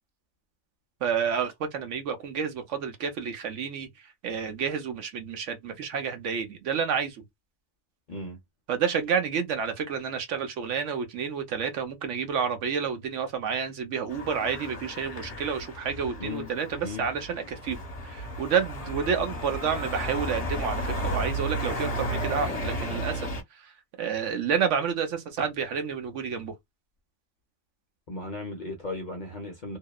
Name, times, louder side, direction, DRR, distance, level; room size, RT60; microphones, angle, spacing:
voice 1, 1.0-3.9 4.2-7.2 8.7-23.3 23.6-23.7 24.0-26.5, right 7 dB, 70° right, 1.0 m, -29 dB
voice 2, 8.1-8.4 16.2-16.5 16.8-17.1 28.1-29.8, left 3 dB, 50° left, 0.6 m, -36 dB
sound 1, 14.1-23.4, right 1 dB, 35° left, 1.0 m, -33 dB
2.8 x 2.0 x 2.2 m
omnidirectional pair, 1.3 m